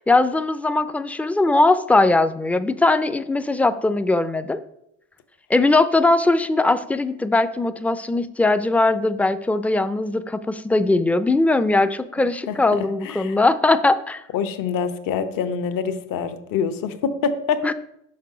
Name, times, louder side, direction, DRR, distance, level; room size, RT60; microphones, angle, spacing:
voice 1, 0.1-4.6 5.5-14.2 17.6-17.7, left 2 dB, 5° left, 12 dB, 0.4 m, -20 dB
voice 2, 12.5-13.4 14.3-17.6, left 6 dB, 60° left, 10 dB, 0.9 m, -26 dB
6.1 x 5.3 x 4.8 m, 0.80 s
hypercardioid pair, 70°, 37 cm